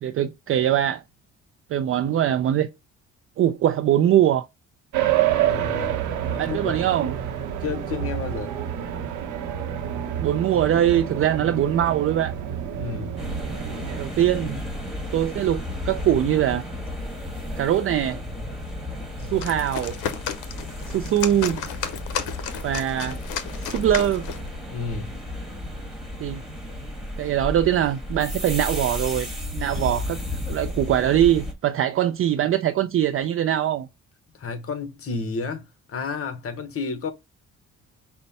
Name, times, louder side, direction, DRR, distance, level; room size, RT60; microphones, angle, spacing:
voice 1, 0.0-1.0 1.7-2.7 3.4-4.5 6.4-7.1 10.2-12.3 14.0-14.6 15.1-16.6 17.6-18.2 19.3-20.0 20.9-21.6 22.6-23.2 23.6-24.3 26.2-26.4 27.2-29.3 29.5-30.2 30.5-33.9, right 11 dB, 45° right, 0.4 m, -22 dB
sound 1, 4.9-14.1, right 11 dB, 90° right, 0.8 m, -28 dB
voice 2, 5.4-6.8 7.6-8.5 12.8-13.3 24.7-25.2 34.4-37.1, left 5 dB, 50° left, 1.0 m, -31 dB
sound 2, 13.2-31.5, left 1 dB, ahead, 1.6 m, -33 dB
sound 3, 19.2-24.5, left 8 dB, 90° left, 0.6 m, -33 dB
5.4 x 2.2 x 4.0 m
cardioid pair, 90°, 30 cm